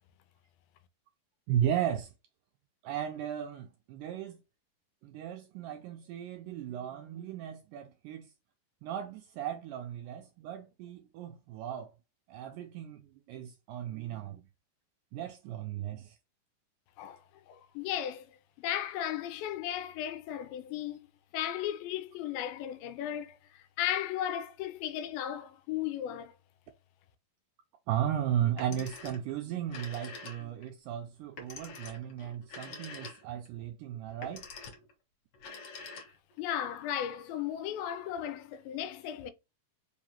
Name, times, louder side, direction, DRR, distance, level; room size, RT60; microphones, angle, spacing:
voice 1, 1.5-2.1 2.8-4.4 5.0-8.3 8.8-11.9 12.3-14.4 15.1-16.2 27.9-34.4, right 10 dB, 85° right, 1.8 m, -35 dB
voice 2, 17.0-21.1 21.3-26.3 36.4-39.3, left 11 dB, 85° left, 2.3 m, -36 dB
Telephone, 28.5-29.3 29.6-30.7 31.4-33.5 34.1-34.9 35.3-36.4, left 4 dB, 65° left, 1.4 m, -46 dB
5.5 x 2.4 x 2.8 m
omnidirectional pair, 4.1 m